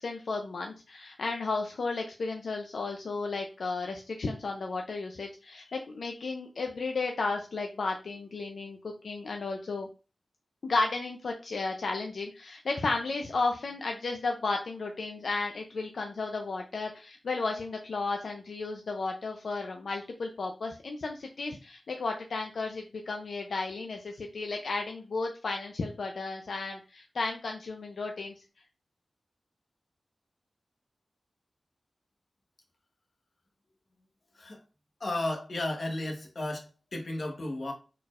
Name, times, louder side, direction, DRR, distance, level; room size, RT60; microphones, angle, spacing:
voice 1, 0.0-9.9 10.6-28.3, left 3 dB, 85° left, 0.5 m, -33 dB
voice 2, 35.0-37.7, left 1 dB, 55° left, 1.3 m, -34 dB
4.4 x 4.0 x 2.5 m
wide cardioid pair, 110°, 0 cm